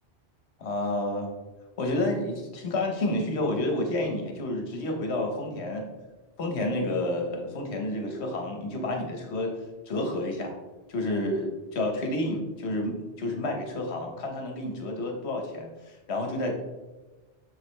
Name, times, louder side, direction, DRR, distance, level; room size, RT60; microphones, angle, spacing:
voice 1, 0.6-1.3 1.8-5.9 6.4-9.5 9.9-10.5 10.9-16.5, left 1 dB, 70° left, 2 dB, 1.2 m, -30 dB
6.3 x 5.0 x 3.2 m, 1.2 s
omnidirectional pair, 1.2 m